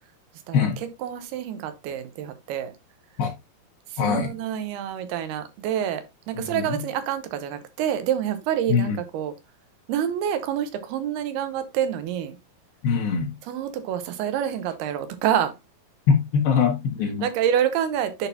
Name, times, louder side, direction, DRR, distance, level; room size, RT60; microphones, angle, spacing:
voice 1, 0.5-2.7 3.9-9.4 9.9-12.4 13.4-15.6 17.0-18.3, right 10 dB, 85° right, 2.9 m, -27 dB
voice 2, 4.0-4.3 6.4-6.8 8.7-9.0 12.8-13.3 16.1-17.2, left 6 dB, 75° left, 3.3 m, -22 dB
10.5 x 4.2 x 2.7 m
omnidirectional pair, 4.4 m